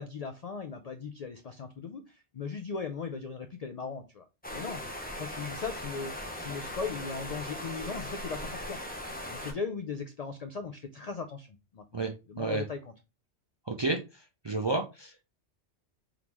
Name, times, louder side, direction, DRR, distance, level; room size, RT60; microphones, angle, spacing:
voice 1, 0.0-4.3 4.5-4.8 5.2-8.8 9.3-11.8 12.3-12.9, left 5 dB, 60° left, 7 dB, 0.4 m, -38 dB
sound 1, 4.4-9.5, left 1 dB, 10° left, 0.6 m, -39 dB
voice 2, 13.7-14.0 14.4-15.2, right 3 dB, 40° right, 4 dB, 0.4 m, -30 dB
3.8 x 3.6 x 3.0 m, 0.27 s
omnidirectional pair, 1.2 m